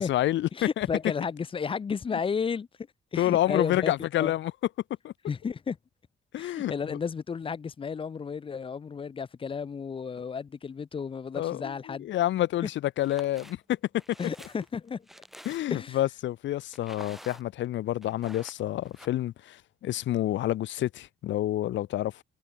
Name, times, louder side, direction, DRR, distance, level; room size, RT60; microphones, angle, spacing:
voice 1, 0.0-0.5 0.8-0.9 3.2-4.5 5.0-5.1 6.3-6.7 11.3-13.8 14.1-14.2 15.5-22.2, left 13 dB, 70° left, 0.7 m, -28 dB
voice 2, 0.5-2.7 3.1-3.9 4.2-4.3 5.3-5.8 6.4-12.1 14.2-15.1 15.7-16.0, left 6 dB, 25° left, 0.5 m, -32 dB
sound 1, 13.0-13.6 14.0-15.9 16.7-17.7 18.0-19.1, equal, ahead, 1.1 m, -48 dB
cardioid pair, 90°, 20 cm